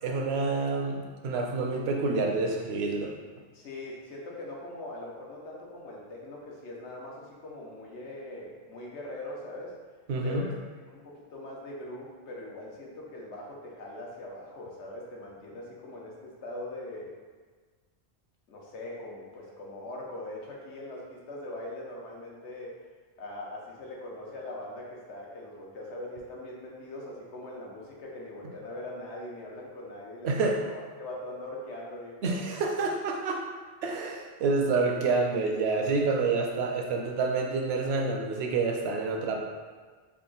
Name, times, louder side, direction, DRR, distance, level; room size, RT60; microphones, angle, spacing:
voice 1, 0.0-3.1 10.1-10.4 30.2-30.6 32.2-33.4 33.8-39.4, right 3 dB, 70° right, 1 dB, 0.8 m, -28 dB
voice 2, 3.5-9.7 10.2-10.6 10.9-17.2 18.5-22.8 23.2-32.6, left 1 dB, 90° left, -3 dB, 1.1 m, -41 dB
3.5 x 2.3 x 3.8 m, 1.5 s
omnidirectional pair, 1.1 m